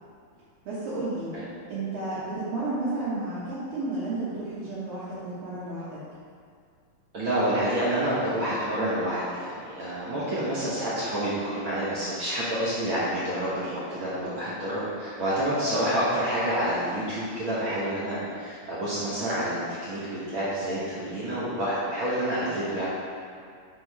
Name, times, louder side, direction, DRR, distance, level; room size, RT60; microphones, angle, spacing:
voice 1, 0.6-1.3 1.7-6.1, right 2 dB, 80° right, -12 dB, 3.1 m, -32 dB
voice 2, 7.1-22.9, right 1 dB, 60° right, -9 dB, 1.4 m, -28 dB
8.5 x 3.8 x 4.7 m, 2.2 s
omnidirectional pair, 4.0 m